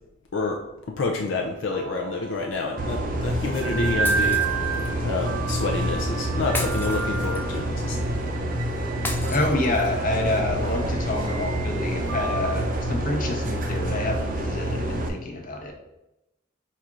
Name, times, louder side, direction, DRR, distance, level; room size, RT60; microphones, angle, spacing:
voice 1, 1.0-8.3, left 3 dB, 70° left, 1 dB, 0.5 m, -29 dB
sound 1, 1.7-14.4, right 5 dB, 85° right, 0.4 m, -33 dB
sound 2, 2.8-15.1, right 1 dB, 45° right, 0.6 m, -27 dB
Shatter, 4.1-4.9 6.5-7.6 9.1-10.1, left 2 dB, 10° left, 0.4 m, -34 dB
voice 2, 9.3-15.7, left 2 dB, 45° left, 1 dB, 0.8 m, -28 dB
4.2 x 2.5 x 4.7 m, 0.91 s
head